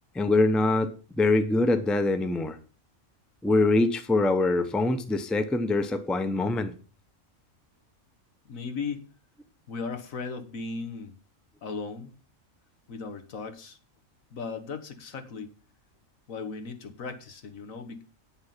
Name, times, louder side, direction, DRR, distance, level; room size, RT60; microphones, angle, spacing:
voice 1, 0.1-0.9 1.2-2.6 3.4-6.7, left 2 dB, ahead, 9 dB, 0.6 m, -24 dB
voice 2, 8.4-9.1 9.7-11.2 11.6-12.1 12.9-13.8 14.3-15.5 16.3-18.0, left 4 dB, 80° left, 7 dB, 1.7 m, -37 dB
9.2 x 6.4 x 5.7 m, 0.37 s
omnidirectional pair, 1.4 m